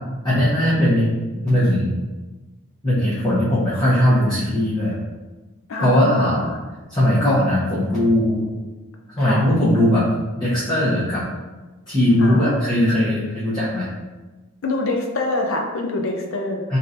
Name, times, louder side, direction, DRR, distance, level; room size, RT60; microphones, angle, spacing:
voice 1, 0.2-1.1 1.4-1.9 2.8-4.9 5.8-6.4 6.9-8.5 9.1-10.1 10.4-11.2 11.9-13.9 16.7-16.8, left 1 dB, 20° left, -11 dB, 0.7 m, -19 dB
voice 2, 5.7-6.6 9.2-9.5 12.2-12.6 14.6-16.7, left 2 dB, 70° left, 2 dB, 0.5 m, -25 dB
3.6 x 2.7 x 2.6 m, 1.2 s
head